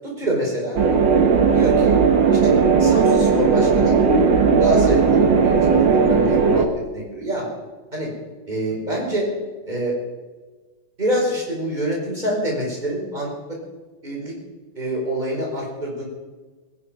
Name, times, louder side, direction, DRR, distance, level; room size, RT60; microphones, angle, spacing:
voice 1, 0.2-0.8 1.5-1.9 2.3-2.5 2.8-4.0 4.6-5.5 5.9-6.7 6.9-7.5 7.9-8.1 8.5-9.3 9.7-10.0 11.0-13.3 14.0-14.3 14.8-16.0, right 1 dB, 20° right, -3 dB, 5.3 m, -26 dB
sound 1, 0.8-6.7, right 5 dB, 80° right, 2.2 m, -16 dB
23.0 x 10.0 x 5.2 m, 1.4 s
omnidirectional pair, 2.0 m